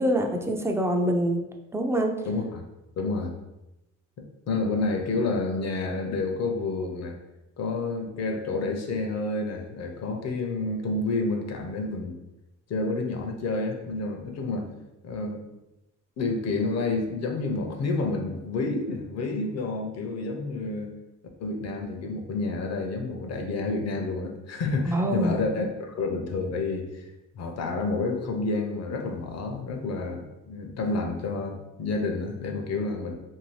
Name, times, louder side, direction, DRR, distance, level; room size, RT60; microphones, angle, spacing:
voice 1, 0.0-1.4 1.7-2.1 24.8-25.4, right 1 dB, 10° right, 3 dB, 0.4 m, -25 dB
voice 2, 2.2-2.6 3.0-3.3 4.2-7.2 7.6-12.2 12.7-14.7 15.0-15.4 16.2-20.9 21.4-27.0 27.3-33.1, left 3 dB, 60° left, 4 dB, 0.6 m, -29 dB
2.7 x 2.6 x 3.1 m, 0.95 s
cardioid pair, 90°, 30 cm